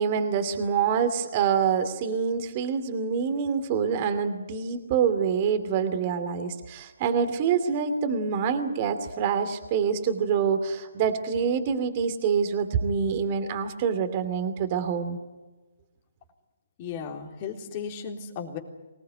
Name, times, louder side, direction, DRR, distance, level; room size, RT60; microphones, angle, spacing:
voice 1, 0.0-15.2, right 6 dB, 35° right, 9 dB, 2.7 m, -26 dB
voice 2, 16.8-18.6, left 6 dB, 30° left, 1 dB, 3.6 m, -35 dB
24.5 x 19.5 x 9.5 m, 1.2 s
figure-of-eight pair, 145°, 0 cm